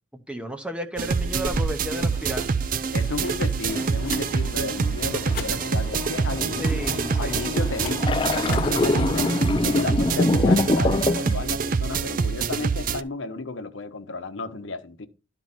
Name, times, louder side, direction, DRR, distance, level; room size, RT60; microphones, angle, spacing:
voice 1, 0.1-2.5 6.5-7.5, right 1 dB, 5° right, 0.7 m, -33 dB
sound 1, 1.0-8.9, left 2 dB, 45° left, 1.3 m, -39 dB
sound 2, 1.0-13.0, right 5 dB, 45° right, 0.4 m, -26 dB
voice 2, 2.9-6.9 7.2-15.1, left 3 dB, 80° left, 0.9 m, -33 dB
sound 3, 3.7-11.3, left 2 dB, 25° left, 0.4 m, -25 dB
12.0 x 4.5 x 4.1 m
head